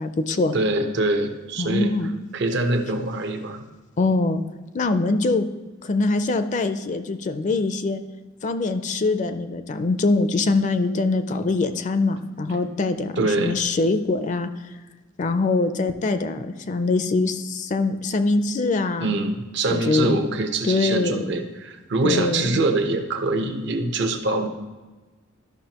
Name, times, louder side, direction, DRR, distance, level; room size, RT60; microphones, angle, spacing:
voice 1, 0.0-0.5 1.6-2.1 4.0-4.4 4.7-5.5 5.8-8.0 8.4-14.5 15.2-19.1 19.7-20.2 20.6-21.2 22.0-22.6, left 3 dB, 40° left, 9 dB, 0.4 m, -23 dB
voice 2, 0.5-1.9 2.3-3.6 13.2-13.6 19.0-24.5, right 2 dB, 60° right, 5 dB, 0.8 m, -24 dB
12.0 x 5.8 x 2.9 m, 1.3 s
head